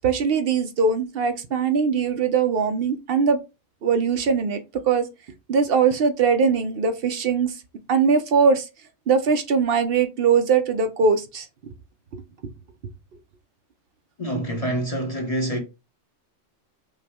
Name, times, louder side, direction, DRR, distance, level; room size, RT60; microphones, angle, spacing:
voice 1, 0.0-3.4 3.8-5.1 5.5-7.5 7.9-8.7 9.1-11.5 12.1-12.2, right 5 dB, 60° right, 0.8 m, -21 dB
voice 2, 14.2-15.6, right 1 dB, 35° left, 0.7 m, -26 dB
5.7 x 2.1 x 3.4 m
omnidirectional pair, 1.2 m